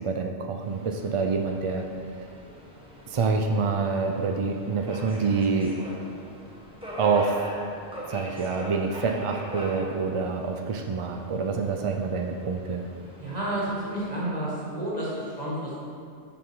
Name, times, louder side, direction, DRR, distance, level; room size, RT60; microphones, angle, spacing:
voice 1, 0.0-1.9 3.1-5.8 7.0-7.4 8.1-12.8, right 4 dB, 55° right, 3 dB, 0.3 m, -26 dB
Subway metro underground, 0.6-14.2, equal, 5° right, 1.3 m, -42 dB
voice 2, 13.2-16.0, right 1 dB, 35° right, -7 dB, 2.2 m, -31 dB
6.8 x 6.1 x 4.7 m, 2.3 s
omnidirectional pair, 1.1 m